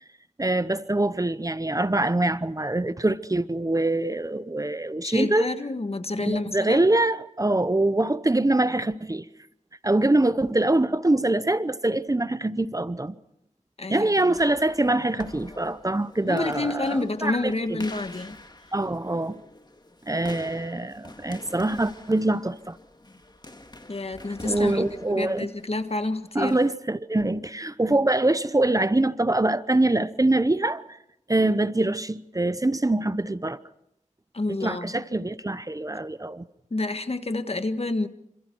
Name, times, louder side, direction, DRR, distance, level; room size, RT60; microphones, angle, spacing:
voice 1, 0.4-5.5 6.2-9.3 9.8-13.2 13.9-17.8 18.7-19.4 20.1-22.8 24.4-25.5 26.3-30.8 31.3-33.6 34.6-36.4, right 2 dB, 25° right, 0.9 m, -24 dB
voice 2, 5.0-6.9 13.8-14.1 16.3-18.4 23.9-26.6 34.3-35.0 36.7-38.1, left 2 dB, 50° left, 1.6 m, -29 dB
sound 1, 14.3-26.8, left 2 dB, 35° left, 2.2 m, -47 dB
27.0 x 26.5 x 4.6 m
wide cardioid pair, 55°, 13 cm